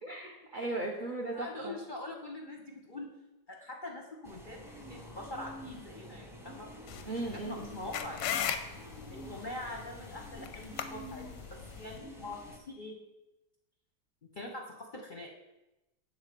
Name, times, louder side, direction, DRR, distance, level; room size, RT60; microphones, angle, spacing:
voice 1, 0.0-1.8 7.1-7.7, right 2 dB, 65° right, 0 dB, 0.4 m, -37 dB
voice 2, 1.3-3.1 3.5-6.7 7.1-7.2 7.4-8.4 9.1-11.2 11.8-13.0 14.3-15.3, left 2 dB, 45° left, 0 dB, 0.6 m, -43 dB
sound 1, 4.2-12.6, equal, 5° right, 0.5 m, -48 dB
sound 2, 6.9-12.0, left 8 dB, 85° left, 1.3 m, -38 dB
7.2 x 3.9 x 6.6 m, 0.98 s
omnidirectional pair, 2.0 m